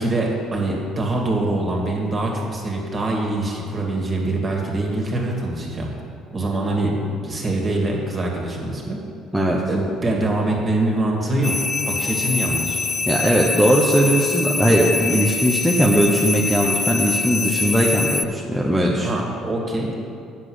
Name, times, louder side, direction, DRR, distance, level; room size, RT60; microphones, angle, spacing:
voice 1, 0.0-5.9 6.3-9.0 9.7-12.8 19.0-20.0, right 2 dB, 30° right, -1 dB, 2.3 m, -24 dB
sound 1, 11.4-18.2, left 4 dB, 25° left, 0.4 m, -24 dB
voice 2, 13.1-19.1, right 1 dB, 5° right, -3 dB, 1.0 m, -19 dB
8.3 x 7.3 x 6.4 m, 2.3 s
cardioid pair, 100°, 0 cm